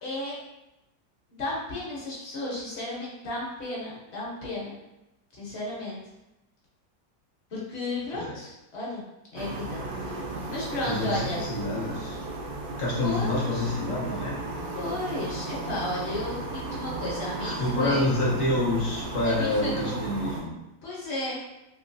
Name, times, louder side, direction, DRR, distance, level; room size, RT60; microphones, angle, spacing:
voice 1, 0.0-0.4 1.3-4.8 5.3-6.0 7.5-9.0 9.3-10.2 10.5-11.4 13.0-13.7 14.7-18.1 19.2-20.0 20.8-21.4, left 2 dB, 50° left, -5 dB, 0.9 m, -33 dB
sound 1, 9.4-20.4, right 2 dB, 70° right, 1.0 m, -35 dB
voice 2, 10.8-12.2 12.8-14.4 17.4-20.5, left 1 dB, 75° left, -6 dB, 0.4 m, -27 dB
3.1 x 2.9 x 2.6 m, 0.93 s
omnidirectional pair, 2.0 m